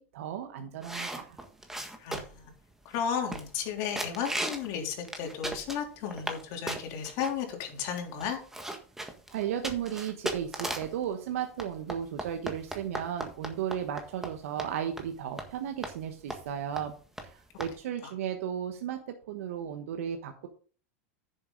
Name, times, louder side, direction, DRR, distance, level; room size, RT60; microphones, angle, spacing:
voice 1, 0.0-1.4 9.3-16.9 17.2-19.0 19.3-20.5, right 9 dB, 70° right, 5 dB, 1.2 m, -35 dB
sound 1, 0.8-2.5 2.9-3.0 3.3-3.7 4.0-4.7 5.1-6.4 6.7-7.3 7.9-8.0 8.2-11.0 11.6-14.3 14.6-14.7 15.0-15.1 15.4-15.5 15.8-16.0 16.3-16.5 16.8-16.9 17.2-17.3 17.6-17.7, right 1 dB, 5° right, 1.6 m, -36 dB
voice 2, 2.0-2.5 2.8-8.4, left 7 dB, 55° left, 2 dB, 3.3 m, -34 dB
9.8 x 7.2 x 4.0 m, 0.41 s
hypercardioid pair, 110°, 8 cm